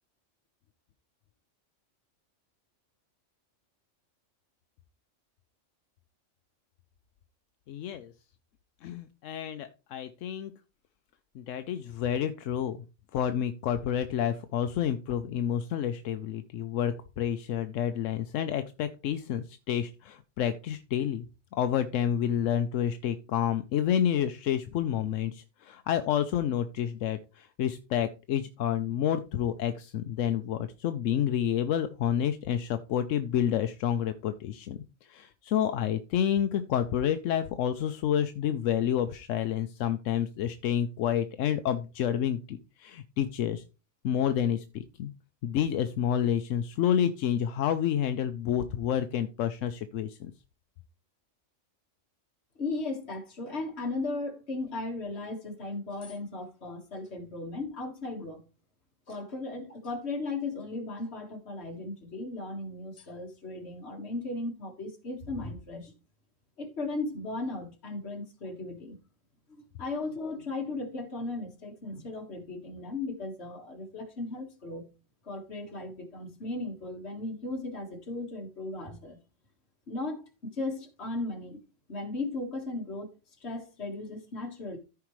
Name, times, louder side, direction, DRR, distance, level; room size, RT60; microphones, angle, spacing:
voice 1, 7.7-8.1 8.8-10.5 11.4-12.8 13.1-21.3 21.5-34.8 35.1-43.6 44.0-45.1 45.4-50.3, left 9 dB, 85° left, 1.0 m, -29 dB
voice 2, 52.6-58.5 59.1-65.9 66.6-69.0 69.5-74.9 75.3-79.2 79.9-81.6 81.9-83.1 83.4-84.8, left 2 dB, 60° left, 1.9 m, -36 dB
14.0 x 4.8 x 3.1 m
omnidirectional pair, 1.3 m